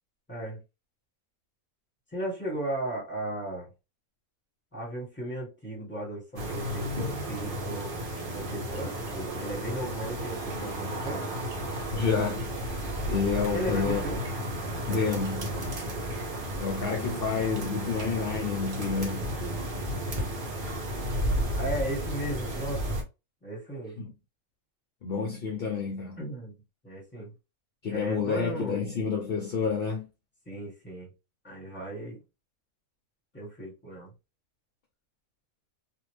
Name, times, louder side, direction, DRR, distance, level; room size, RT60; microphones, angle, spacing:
voice 1, 0.3-0.6 2.1-3.7 4.7-7.9 8.3-11.2 12.8-13.0 13.5-14.2 21.6-22.9 23.4-24.0 26.2-27.3 27.9-28.8 30.4-31.1 31.4-32.2 33.3-34.1, right 1 dB, 10° left, 1.5 m, -36 dB
sound 1, 6.4-23.0, equal, 45° right, 0.9 m, -33 dB
voice 2, 11.9-12.5 13.1-14.0 14.9-15.7 16.6-19.3 24.0-24.1 25.0-26.2 27.8-30.1, left 5 dB, 55° left, 0.7 m, -29 dB
2.5 x 2.5 x 3.1 m
omnidirectional pair, 1.5 m